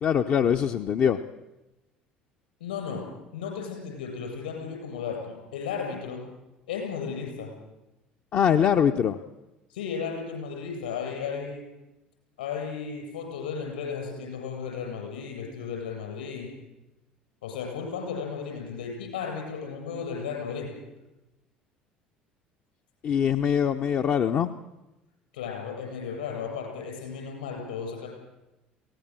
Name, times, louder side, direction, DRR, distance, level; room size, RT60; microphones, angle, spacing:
voice 1, 0.0-1.2 8.3-9.2 23.0-24.5, left 8 dB, 45° left, 5 dB, 0.8 m, -23 dB
voice 2, 2.6-3.0 3.3-6.2 6.7-7.5 9.7-11.6 12.4-16.5 17.4-20.7 25.3-28.1, left 6 dB, 75° left, 1 dB, 7.8 m, -34 dB
23.0 x 17.5 x 7.7 m, 0.99 s
figure-of-eight pair, 60°, 5 cm